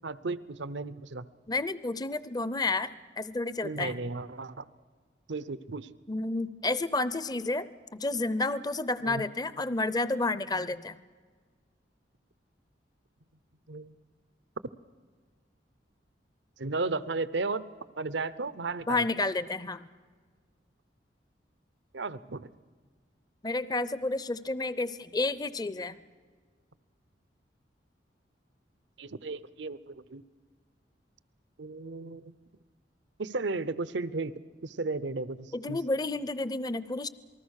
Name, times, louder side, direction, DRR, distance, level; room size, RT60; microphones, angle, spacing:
voice 1, 0.0-1.2 3.6-4.7 5.3-5.9 9.0-9.3 13.7-13.9 16.6-17.6 18.0-19.0 21.9-22.5 29.0-30.2 31.6-32.3 33.2-34.3 34.6-35.8, right 3 dB, 80° right, 16 dB, 0.8 m, -34 dB
voice 2, 1.5-4.0 6.1-11.0 18.9-19.9 23.4-26.0 35.5-37.1, left 2 dB, 20° left, 16 dB, 0.6 m, -31 dB
27.5 x 19.5 x 6.5 m, 1.5 s
head